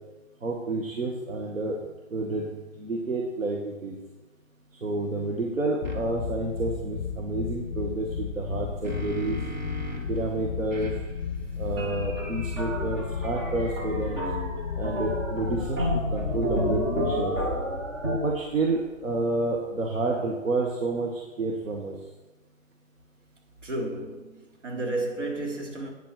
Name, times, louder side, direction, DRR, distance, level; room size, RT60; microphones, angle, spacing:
voice 1, 0.4-1.8 2.1-4.0 4.8-9.4 10.1-10.9 11.6-14.2 14.8-17.3 18.2-21.9, right 2 dB, 85° right, 1.9 m, -29 dB
sound 1, 5.8-19.1, left 6 dB, 40° left, 1.6 m, -34 dB
sound 2, 5.8-6.0 8.4-10.2 10.7-14.0, right 2 dB, 35° right, 1.9 m, -41 dB
sound 3, 11.8-18.2, equal, 20° right, 1.1 m, -31 dB
voice 2, 23.6-25.9, right 2 dB, 65° right, 3.2 m, -32 dB
9.2 x 7.8 x 6.1 m
hypercardioid pair, 165°, 39 cm